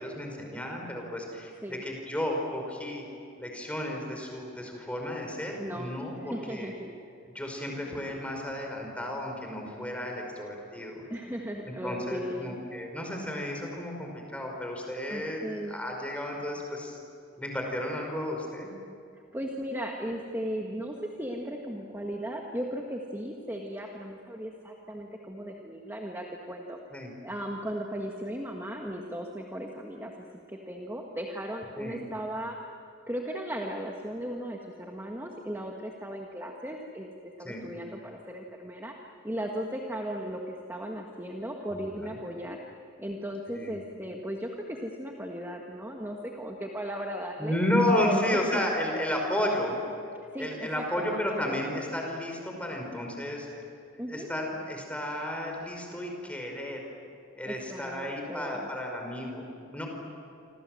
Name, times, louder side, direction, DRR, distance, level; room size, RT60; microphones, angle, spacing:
voice 1, 0.0-3.1 3.4-6.7 7.3-11.0 11.6-17.0 17.4-18.7 26.9-27.1 31.8-32.0 37.4-37.6 41.9-42.1 43.5-43.7 47.4-49.8 50.4-53.5 54.1-56.8 57.3-59.9, left 1 dB, 5° left, 1 dB, 5.2 m, -32 dB
voice 2, 5.6-6.9 11.1-12.6 15.1-15.7 19.3-26.8 27.2-30.1 30.5-32.6 33.1-38.9 39.2-42.6 43.0-47.6 48.0-48.4 48.8-48.9 50.3-51.6 54.0-54.3 57.4-58.7, equal, 10° right, 1 dB, 1.7 m, -36 dB
28.0 x 26.0 x 7.8 m, 2.5 s
head